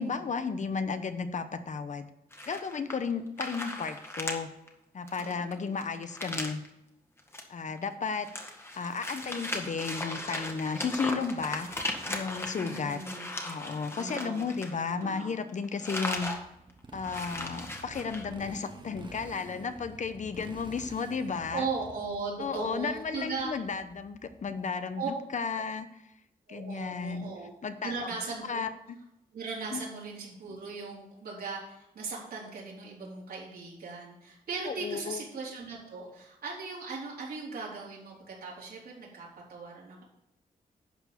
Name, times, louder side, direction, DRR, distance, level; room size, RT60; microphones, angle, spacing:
voice 1, 0.0-2.1 2.5-4.5 4.9-6.6 7.5-8.3 8.8-11.7 12.1-13.0 13.4-16.3 16.9-21.7 22.4-26.0 26.5-27.3 27.6-27.9 28.5-29.0 29.7-29.8 34.7-35.2, left 5 dB, 50° left, 10 dB, 0.9 m, -33 dB
sound 1, 2.3-3.1 3.4-4.4 4.7-4.8 5.1-6.7 7.2-7.4 7.8-15.2 15.5-16.4 16.7-16.8 17.0-18.3, left 1 dB, 15° left, 1.6 m, -37 dB
voice 2, 5.2-5.8 12.6-13.3 14.0-14.5 14.8-15.3 21.5-23.5 25.0-25.1 26.5-27.5 27.8-28.6 29.3-40.0, right 4 dB, 90° right, -5 dB, 4.0 m, -38 dB
Motorcycle, 16.1-24.8, right 3 dB, 30° right, 1.1 m, -48 dB
11.5 x 4.7 x 7.2 m, 0.85 s
wide cardioid pair, 105°, 16 cm